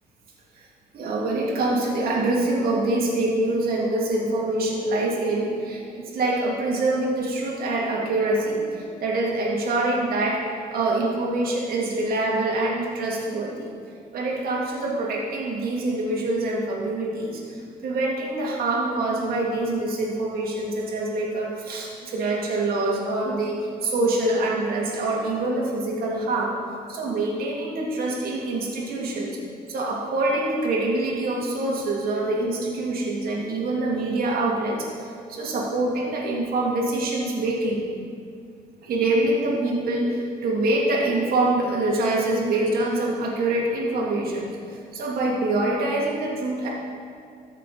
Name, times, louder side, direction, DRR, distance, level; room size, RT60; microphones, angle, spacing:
voice 1, 0.9-5.8 6.1-10.4 10.7-13.7 14.1-26.5 26.9-29.4 29.7-37.8 38.8-46.7, right 2 dB, 60° right, -3 dB, 2.4 m, -25 dB
14.0 x 6.5 x 4.0 m, 2.3 s
cardioid pair, 110°, 17 cm